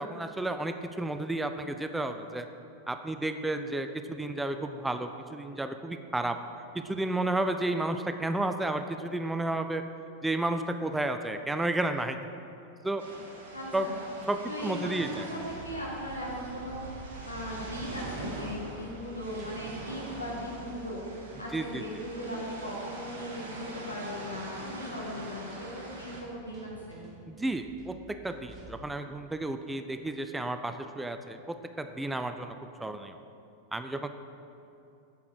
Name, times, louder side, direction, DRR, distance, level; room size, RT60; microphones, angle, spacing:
voice 1, 0.0-2.5 2.9-6.4 6.7-9.8 10.2-12.2 12.8-13.0 13.7-13.9 14.3-15.3 21.5-21.8 27.3-33.2 33.7-34.1, right 2 dB, 5° right, 8 dB, 0.4 m, -32 dB
sound 1, 13.0-26.2, right 2 dB, 60° right, 1.8 m, -43 dB
voice 2, 13.5-14.0 14.5-15.4 15.6-16.8 17.2-27.0, equal, 85° left, -4 dB, 2.0 m, -38 dB
sound 2, 15.4-28.7, right 2 dB, 25° right, 1.9 m, -51 dB
8.4 x 7.9 x 4.7 m, 2.8 s
figure-of-eight pair, 90°, 0 cm